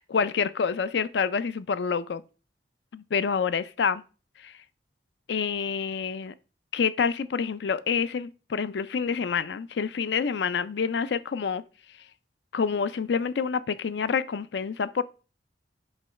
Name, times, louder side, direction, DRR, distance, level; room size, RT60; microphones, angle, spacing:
voice 1, 0.0-2.2 2.9-4.0 4.4-4.5 5.3-6.3 6.7-11.6 12.5-15.0, left 6 dB, 75° left, 0.4 m, -27 dB
8.0 x 3.1 x 5.6 m
head